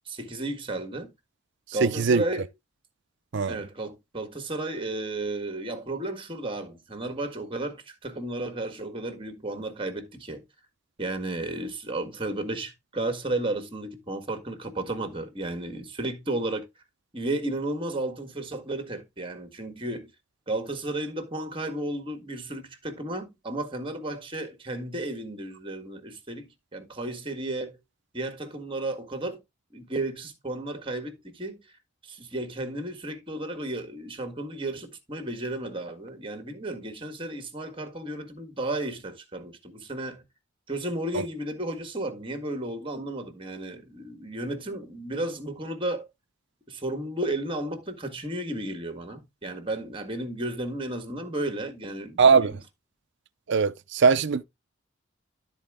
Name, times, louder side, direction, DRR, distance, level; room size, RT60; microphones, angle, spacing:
voice 1, 0.0-1.1 1.7-2.5 3.5-10.4 11.0-16.7 17.1-20.1 20.5-27.8 28.1-29.4 29.7-31.6 32.0-40.2 40.7-46.1 46.7-52.6, right 2 dB, 25° right, 1.7 m, -33 dB
voice 2, 1.8-2.2 3.3-3.6 52.2-52.5 53.5-54.4, right 5 dB, 60° right, 0.5 m, -20 dB
12.5 x 4.4 x 3.6 m
head